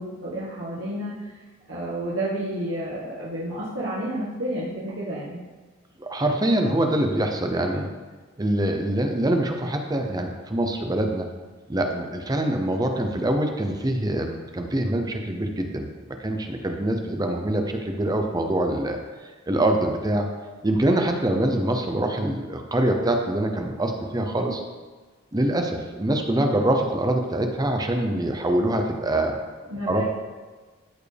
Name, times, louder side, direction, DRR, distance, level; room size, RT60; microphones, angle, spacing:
voice 1, 0.0-1.4 1.7-5.4 29.7-30.0, right 1 dB, 75° right, -8 dB, 1.5 m, -30 dB
voice 2, 6.0-7.9 8.4-11.3 11.7-20.3 20.6-24.6 25.3-29.4 29.9-30.0, right 1 dB, 20° right, 4 dB, 0.6 m, -24 dB
13.5 x 4.6 x 3.4 m, 1.4 s
head